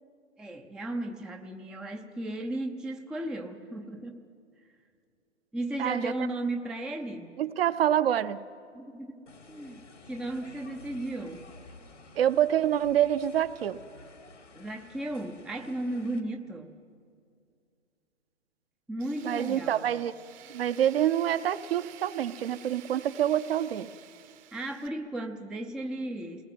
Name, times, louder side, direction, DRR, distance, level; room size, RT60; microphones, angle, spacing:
voice 1, 0.4-4.2 5.5-7.4 8.7-9.2 9.5-9.8 10.1-11.5 14.5-16.7 18.9-19.9 24.5-26.4, right 1 dB, ahead, 4 dB, 0.5 m, -35 dB
voice 2, 5.8-6.1 7.4-8.4 12.2-13.8 19.2-20.1 20.5-23.9, right 10 dB, 55° right, 11 dB, 1.0 m, -26 dB
sound 1, 9.3-16.2, left 3 dB, 85° left, 2.2 m, -52 dB
Tools, 19.0-24.9, right 11 dB, 20° right, 0.9 m, -51 dB
28.0 x 19.0 x 7.7 m, 2.4 s
figure-of-eight pair, 125°, 35 cm